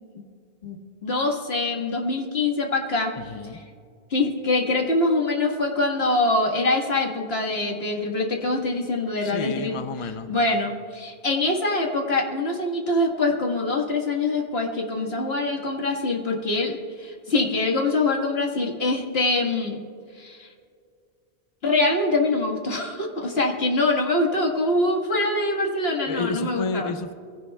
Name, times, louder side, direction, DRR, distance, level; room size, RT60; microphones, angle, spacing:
voice 1, 1.0-3.1 4.1-9.8 10.3-19.8 20.2-20.5 21.6-26.9, left 2 dB, 75° left, 1 dB, 2.0 m, -24 dB
voice 2, 3.2-3.6 9.2-10.3 26.1-27.1, left 4 dB, 35° left, 8 dB, 0.6 m, -31 dB
23.0 x 16.5 x 2.4 m, 2.3 s
omnidirectional pair, 1.1 m